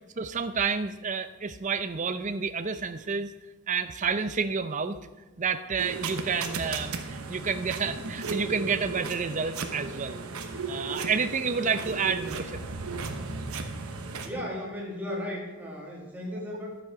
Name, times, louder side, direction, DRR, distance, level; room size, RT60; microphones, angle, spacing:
voice 1, 0.2-3.3 3.7-5.0 5.4-10.2 10.7-12.6, right 5 dB, 35° right, 10 dB, 0.5 m, -29 dB
sound 1, 5.8-14.3, right 4 dB, 75° right, 1.0 m, -35 dB
voice 2, 14.2-16.8, left 1 dB, 10° right, -3 dB, 2.1 m, -35 dB
11.5 x 7.7 x 4.8 m, 1.2 s
head